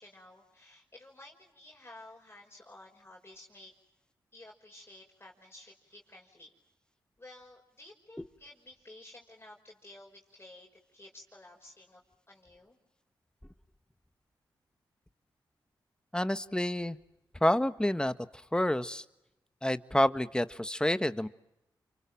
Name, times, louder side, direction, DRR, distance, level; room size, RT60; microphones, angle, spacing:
voice 1, 0.0-3.7 4.3-6.5 7.2-12.0 12.3-12.8, left 1 dB, 25° left, -1 dB, 5.7 m, -53 dB
voice 2, 16.1-17.0 17.4-18.1 18.5-19.0 19.6-21.3, left 1 dB, 10° left, 12 dB, 1.6 m, -28 dB
29.0 x 25.0 x 7.7 m, 0.88 s
supercardioid pair, 40°, 9 cm